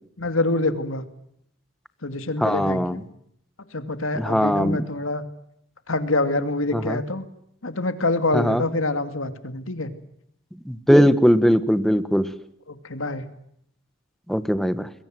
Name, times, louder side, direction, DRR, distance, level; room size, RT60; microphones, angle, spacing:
voice 1, 0.2-1.0 2.0-3.0 3.6-5.2 5.9-7.2 7.6-9.9 12.7-13.3, left 2 dB, 80° left, 10 dB, 2.5 m, -26 dB
voice 2, 2.4-3.0 4.2-4.8 6.7-7.0 8.3-8.6 10.7-12.3 14.3-14.9, equal, ahead, 12 dB, 1.3 m, -20 dB
28.0 x 22.0 x 7.9 m, 0.73 s
head